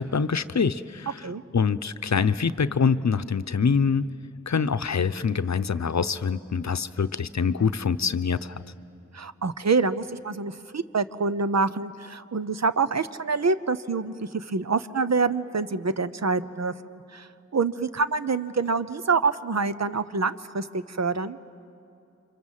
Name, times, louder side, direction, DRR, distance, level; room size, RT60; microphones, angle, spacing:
voice 1, 0.0-4.1 4.5-8.6, left 5 dB, 70° left, 12 dB, 0.7 m, -25 dB
voice 2, 9.1-21.4, right 4 dB, 65° right, 12 dB, 0.8 m, -26 dB
29.0 x 25.0 x 7.5 m, 2.7 s
wide cardioid pair, 50°, 29 cm